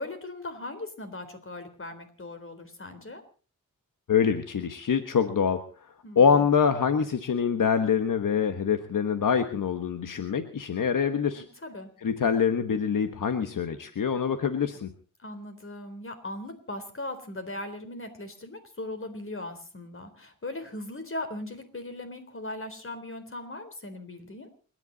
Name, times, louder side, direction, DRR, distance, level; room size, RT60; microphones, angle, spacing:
voice 1, 0.0-3.2 6.0-6.5 11.4-11.9 15.2-24.5, left 2 dB, 40° left, 8 dB, 3.9 m, -39 dB
voice 2, 4.1-5.6 6.1-11.4 12.0-14.9, left 7 dB, 80° left, 8 dB, 1.3 m, -25 dB
29.0 x 11.0 x 4.0 m, 0.38 s
wide cardioid pair, 75°, 32 cm